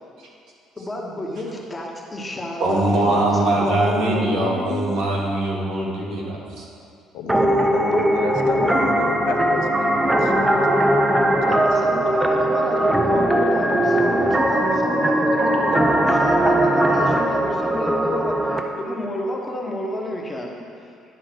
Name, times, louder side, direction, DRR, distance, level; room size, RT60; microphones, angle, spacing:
voice 1, 0.8-4.9 11.4-20.6, left 1 dB, 15° left, -1 dB, 1.1 m, -30 dB
voice 2, 2.6-6.6, right 1 dB, 70° right, -4 dB, 1.8 m, -22 dB
voice 3, 7.1-10.8 11.2-12.1, left 6 dB, 85° left, 4 dB, 0.6 m, -31 dB
sound 1, 7.3-18.6, right 1 dB, 10° right, 0.6 m, -19 dB
10.5 x 3.6 x 6.0 m, 2.4 s
cardioid pair, 125°, 0 cm